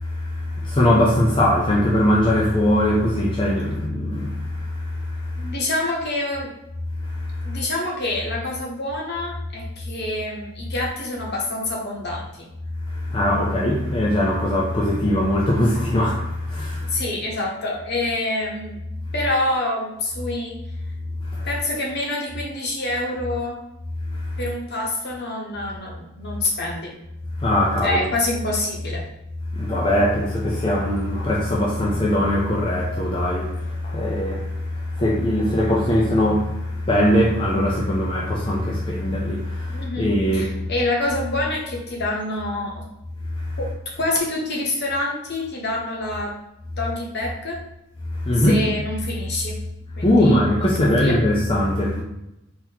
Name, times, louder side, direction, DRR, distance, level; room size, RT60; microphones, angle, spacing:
voice 1, 0.0-5.5 7.0-7.6 12.9-17.0 21.2-21.5 24.1-24.4 27.4-28.0 29.5-40.7 43.3-43.6 48.1-48.6 50.0-52.0, left 1 dB, 25° left, 0.5 m, -21 dB
voice 2, 5.3-6.5 7.4-12.5 16.8-18.8 19.1-20.5 21.4-23.6 24.4-26.9 27.8-29.0 39.7-40.1 40.3-42.8 43.6-43.7 44.0-46.3 46.8-47.6 48.3-49.6 50.0-51.2, left 2 dB, 50° left, 1.1 m, -26 dB
4.1 x 2.9 x 4.0 m
head